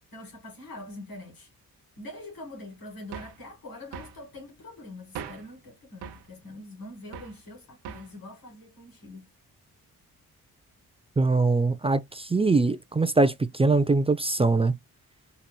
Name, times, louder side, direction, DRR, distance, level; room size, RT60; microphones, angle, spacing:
voice 1, 0.1-1.5 2.0-9.3, left 2 dB, 60° left, 2.5 m, -44 dB
sound 1, 3.1-3.4 3.9-4.2 5.2-5.5 6.0-6.3 7.1-7.4 7.8-8.2, right 7 dB, 85° right, 0.8 m, -40 dB
voice 2, 11.2-14.8, right 3 dB, 15° right, 0.4 m, -22 dB
4.1 x 2.9 x 2.2 m
supercardioid pair, 50°, 39 cm